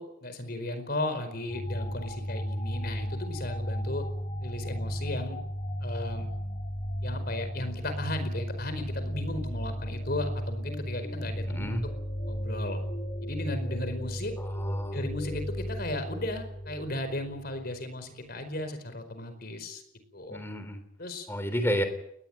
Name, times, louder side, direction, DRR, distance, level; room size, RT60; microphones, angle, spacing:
voice 1, 0.0-4.0 4.4-5.4 5.8-6.3 7.0-11.8 12.3-12.8 13.2-14.3 14.9-19.8 20.1-20.4 21.0-21.3, left 1 dB, 50° left, 9 dB, 4.8 m, -35 dB
sound 1, 1.5-17.8, equal, 35° left, 2.3 m, -34 dB
voice 2, 11.5-11.8 14.4-15.0 20.3-20.8 21.3-21.8, equal, 10° left, 9 dB, 3.5 m, -31 dB
21.0 x 20.0 x 9.2 m, 0.73 s
head